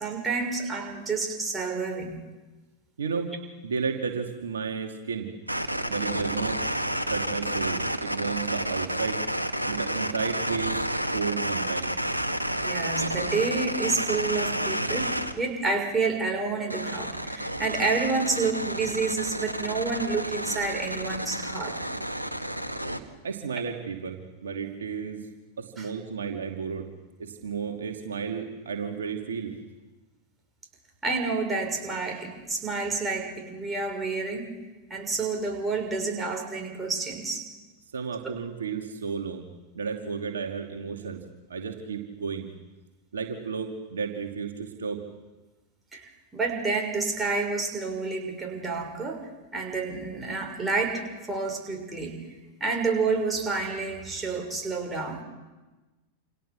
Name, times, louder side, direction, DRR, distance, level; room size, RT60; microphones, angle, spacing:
voice 1, 0.0-2.2 12.6-21.8 25.8-25.9 31.0-34.5 34.9-37.4 38.2-38.3 45.9-51.0 51.3-52.3 52.6-55.2, right 4 dB, 15° right, 2 dB, 6.2 m, -29 dB
voice 2, 3.0-3.3 3.6-5.3 5.9-6.6 7.1-9.2 9.7-10.9 11.1-11.9 23.2-25.3 25.6-26.9 27.2-29.5 37.9-39.5 39.7-41.2 41.5-42.5 43.1-45.0, right 6 dB, 65° right, 3 dB, 2.6 m, -32 dB
sound 1, 5.5-15.3 16.7-23.0, right 1 dB, 85° right, 1.7 m, -30 dB
29.0 x 28.0 x 6.3 m, 1.2 s
figure-of-eight pair, 90°, 0 cm